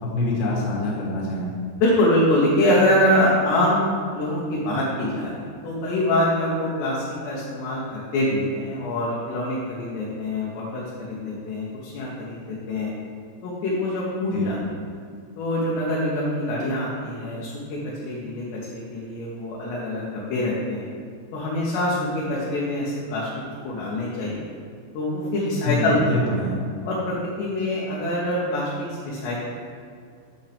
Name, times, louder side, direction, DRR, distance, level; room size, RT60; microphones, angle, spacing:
voice 1, 0.0-1.5 14.3-14.4 25.6-26.6, left 2 dB, 50° left, -5 dB, 2.4 m, -25 dB
voice 2, 1.8-3.9 4.1-12.9 13.4-14.6 15.4-20.9 21.3-23.3 23.6-24.5 24.9-26.0 26.9-28.7 29.0-29.5, left 1 dB, 80° left, -6 dB, 3.2 m, -24 dB
8.3 x 7.2 x 3.4 m, 2.2 s
omnidirectional pair, 5.0 m